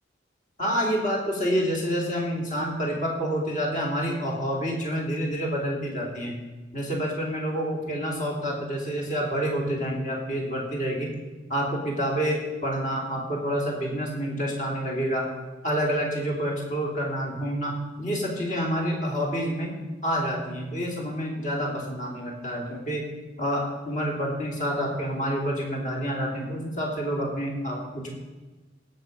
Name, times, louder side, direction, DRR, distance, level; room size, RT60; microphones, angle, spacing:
voice 1, 0.6-6.4 6.7-11.1 11.5-15.3 15.6-19.8 20.0-23.1 23.4-28.1, equal, 45° left, -1 dB, 3.1 m, -28 dB
17.0 x 6.8 x 5.5 m, 1.2 s
head